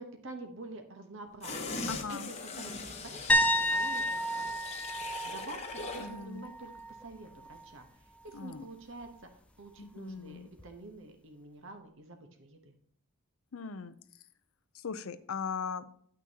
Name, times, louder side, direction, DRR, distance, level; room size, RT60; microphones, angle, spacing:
voice 1, 0.0-1.8 2.1-4.7 5.2-9.3 9.6-12.7, right 2 dB, 60° right, 5 dB, 1.0 m, -48 dB
sound 1, 1.4-6.2 6.5-6.6, left 3 dB, 30° left, 1.0 m, -41 dB
voice 2, 1.9-2.3 6.0-6.5 8.3-8.7 9.8-10.5 13.5-13.9 14.7-15.9, left 5 dB, 70° left, 14 dB, 0.5 m, -39 dB
sound 2, 3.3-7.0 7.4-7.7 10.6-10.7, equal, 5° left, 0.5 m, -31 dB
9.1 x 9.0 x 2.8 m, 0.62 s
head